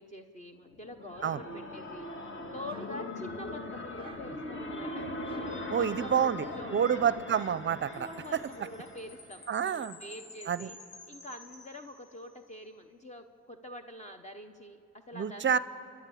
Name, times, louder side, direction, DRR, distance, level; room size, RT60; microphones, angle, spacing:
voice 1, 0.0-5.0 5.7-7.2 8.0-10.8 11.1-15.6, left 1 dB, 25° left, 6 dB, 0.9 m, -46 dB
sound 1, 0.7-9.5, left 1 dB, 40° left, 2.0 m, -40 dB
sound 2, 2.6-3.5 3.9-4.5 5.2-7.0, right 2 dB, 15° right, 1.0 m, -54 dB
voice 2, 5.7-6.5 6.7-8.1 9.5-9.9 10.5-10.7 15.1-15.6, right 8 dB, 40° right, 16 dB, 0.6 m, -28 dB
Chime, 7.9-12.4, left 2 dB, 65° left, 4.1 m, -52 dB
28.5 x 11.0 x 8.5 m, 2.5 s
cardioid pair, 90°, 30 cm